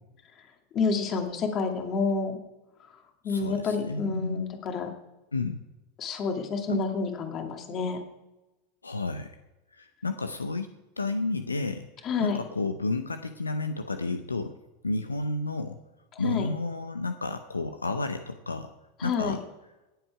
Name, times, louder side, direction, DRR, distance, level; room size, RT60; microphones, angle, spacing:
voice 1, 0.7-2.3 3.2-4.9 6.0-8.0 12.0-12.4 16.2-16.5 19.0-19.4, left 4 dB, 40° left, 3 dB, 2.4 m, -29 dB
voice 2, 3.3-4.5 5.3-5.6 6.7-6.8 8.8-9.3 9.7-10.7 11.0-11.9 12.2-14.6 14.8-15.8 16.2-18.7 19.0-19.4, left 3 dB, 90° left, 9 dB, 0.7 m, -31 dB
17.5 x 8.0 x 4.8 m, 1.0 s
figure-of-eight pair, 85°, 0 cm